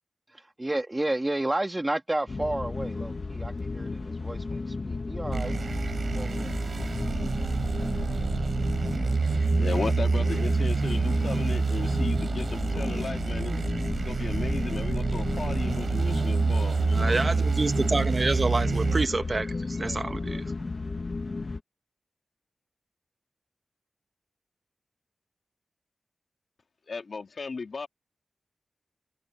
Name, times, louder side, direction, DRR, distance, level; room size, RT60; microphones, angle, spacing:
voice 1, 0.6-6.6, right 1 dB, 25° right, 2.2 m, -32 dB
sound 1, 2.3-21.6, left 3 dB, 50° left, 1.4 m, -33 dB
sound 2, 5.3-19.1, right 4 dB, 65° right, 3.7 m, -27 dB
voice 2, 9.5-13.6 14.0-17.2 26.9-27.9, left 4 dB, 70° left, 2.3 m, -35 dB
voice 3, 16.9-20.5, right 3 dB, 40° right, 1.0 m, -28 dB
wide cardioid pair, 75°, 0 cm